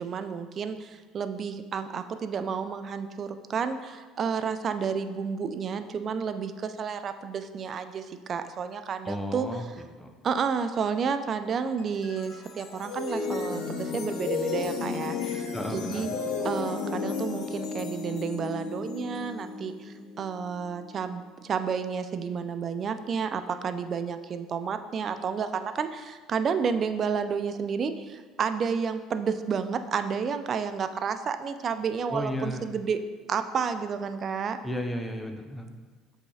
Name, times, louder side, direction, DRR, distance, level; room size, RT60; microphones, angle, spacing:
voice 1, 0.0-9.5 10.2-16.1 16.4-33.0 33.3-34.6, right 6 dB, 45° right, 10 dB, 0.3 m, -31 dB
voice 2, 9.0-9.7 10.0-10.1 15.5-16.2 32.1-32.6 34.6-35.7, equal, 5° left, 4 dB, 0.6 m, -33 dB
sound 1, 11.8-21.0, left 4 dB, 65° left, 0.6 m, -33 dB
7.8 x 2.7 x 2.3 m, 1.5 s
hypercardioid pair, 75°, 0 cm